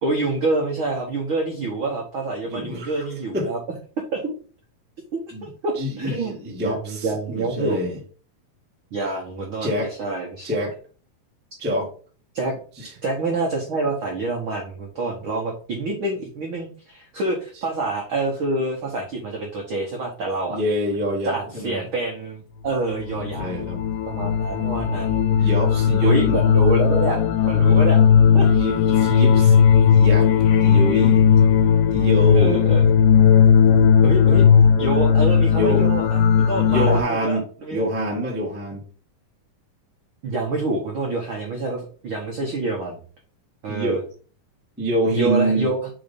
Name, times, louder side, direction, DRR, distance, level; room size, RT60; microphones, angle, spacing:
voice 1, 0.0-3.6 4.0-4.2 5.1-6.4 6.6-7.8 8.9-10.5 12.3-12.6 13.0-20.6 21.2-23.5 24.1-25.5 26.0-27.2 27.5-28.0 28.3-28.5 32.3-32.8 34.0-34.4 34.8-37.8 40.2-43.0 43.6-44.0 45.1-45.9, right 2 dB, 80° right, 0 dB, 1.1 m, -27 dB
voice 2, 2.4-3.0 3.3-3.5 5.3-5.5 5.7-7.9 9.6-9.9 10.4-10.7 11.6-11.9 12.8-12.9 20.5-21.8 23.3-23.8 25.4-26.4 28.4-29.6 29.9-30.3 30.6-31.2 31.9-32.7 35.5-35.9 36.7-37.4 37.7-38.8 43.7-44.0 44.8-45.7, equal, 15° right, -2 dB, 0.4 m, -25 dB
sound 1, 22.9-37.0, left 7 dB, 80° left, 2.2 m, -16 dB
5.0 x 4.0 x 5.1 m, 0.41 s
omnidirectional pair, 3.9 m